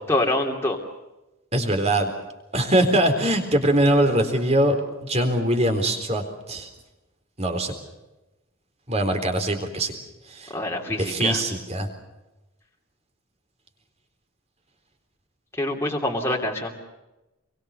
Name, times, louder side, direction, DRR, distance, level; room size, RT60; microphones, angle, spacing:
voice 1, 0.1-0.8 10.5-11.4 15.5-16.7, left 1 dB, 10° left, 0 dB, 3.0 m, -25 dB
voice 2, 1.5-2.1 2.5-4.8 5.0-6.7 7.4-7.7 8.9-9.9 10.3-10.5 11.0-11.9, right 1 dB, 30° right, 6 dB, 3.9 m, -22 dB
27.0 x 23.5 x 6.7 m, 1.0 s
head